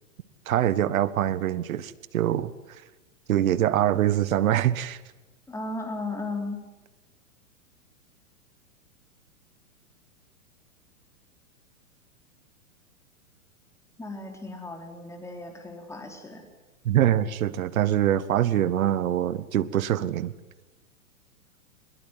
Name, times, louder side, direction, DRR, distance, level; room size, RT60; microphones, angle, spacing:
voice 1, 0.5-2.5 3.3-5.0 16.8-20.3, right 11 dB, 70° right, 1.5 m, -24 dB
voice 2, 5.5-6.7 14.0-16.4, left 2 dB, 5° left, 4.3 m, -35 dB
22.0 x 21.5 x 9.4 m
hypercardioid pair, 125°, 43 cm